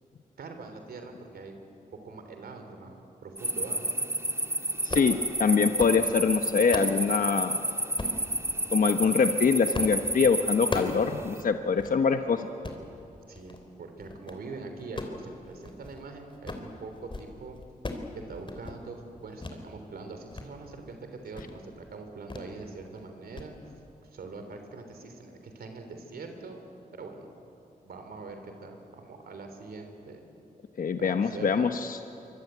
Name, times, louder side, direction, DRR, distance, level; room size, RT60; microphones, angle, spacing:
voice 1, 0.4-1.5 2.0-3.9 13.3-17.6 18.3-23.5 24.1-26.6 26.9-27.3 27.8-30.2 31.0-31.8, right 3 dB, 80° right, 6 dB, 3.4 m, -43 dB
sound 1, 3.4-11.4, right 1 dB, 15° right, 1.6 m, -31 dB
voice 2, 4.8-7.6 8.7-12.5 30.8-32.0, left 5 dB, 60° left, 7 dB, 1.0 m, -24 dB
sound 2, 4.8-5.2 5.6-6.0 6.4-7.0 8.0-8.2 8.9-9.2 9.7-10.0 10.3-11.0 11.4-11.5 11.8-12.0 12.5-12.8 13.3-13.6 14.0-14.4 14.8-16.0 16.3-16.7 17.0-17.3 17.6-18.1 18.4-18.8 19.4-19.6 20.0-20.5 20.8-20.9 21.3-21.6 22.3-22.5 22.8-23.0 23.4-23.5, left 2 dB, 30° left, 3.4 m, -37 dB
24.5 x 23.5 x 9.4 m, 2.8 s
cardioid pair, 80°, 16 cm